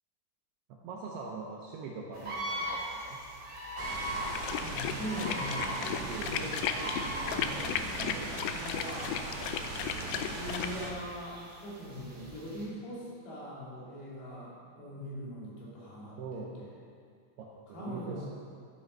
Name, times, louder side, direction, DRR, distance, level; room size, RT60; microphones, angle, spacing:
voice 1, 0.7-3.2 6.0-6.4 8.0-8.3 16.2-16.5 17.4-18.3, right 4 dB, 75° right, -2 dB, 2.6 m, -42 dB
sound 1, 2.1-12.6, right 1 dB, 30° right, 2.3 m, -41 dB
sound 2, 3.8-10.9, right 2 dB, 55° right, 2.4 m, -39 dB
sound 3, 4.3-10.7, left 9 dB, 85° left, 2.4 m, -35 dB
voice 2, 4.6-9.3 10.3-16.6 17.7-18.3, equal, 60° left, -6 dB, 4.4 m, -41 dB
12.0 x 9.4 x 5.5 m, 2.1 s
omnidirectional pair, 5.5 m